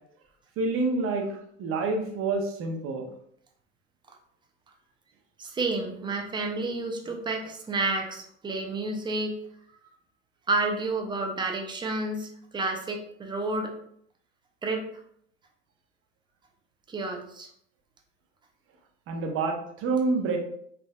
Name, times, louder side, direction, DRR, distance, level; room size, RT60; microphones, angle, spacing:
voice 1, 0.6-3.1 19.1-20.4, right 3 dB, 40° right, 3 dB, 0.7 m, -28 dB
voice 2, 5.4-9.4 10.5-13.7 14.6-14.8 16.9-17.5, right 2 dB, 15° right, 3 dB, 0.4 m, -30 dB
3.3 x 2.4 x 2.3 m, 0.67 s
hypercardioid pair, 85°, 36 cm